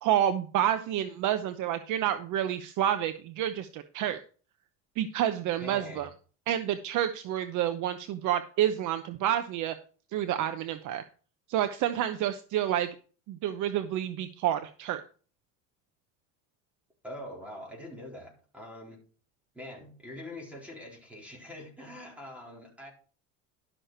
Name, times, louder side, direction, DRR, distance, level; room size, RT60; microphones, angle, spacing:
voice 1, 0.0-4.2 5.0-6.1 6.5-9.7 10.1-11.0 11.5-12.9 13.3-15.0, right 11 dB, 50° right, 10 dB, 0.9 m, -29 dB
voice 2, 5.6-6.1 17.0-19.0 19.5-22.9, left 1 dB, 5° right, -2 dB, 4.1 m, -44 dB
12.0 x 6.6 x 4.5 m, 0.39 s
supercardioid pair, 125°, 37 cm